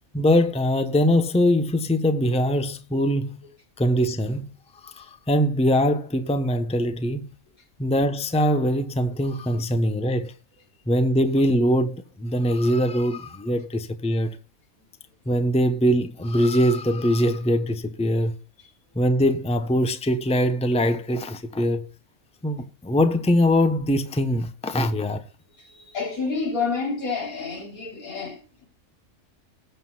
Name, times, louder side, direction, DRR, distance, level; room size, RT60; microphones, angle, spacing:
voice 1, 0.1-3.4 3.8-4.5 4.8-7.3 7.8-10.3 10.9-14.4 15.3-18.4 18.9-21.9 22.4-25.2, equal, 5° left, 0.8 m, -22 dB
voice 2, 25.6-28.6, left 4 dB, 85° left, 4.0 m, -29 dB
19.0 x 7.9 x 2.3 m
omnidirectional pair, 1.4 m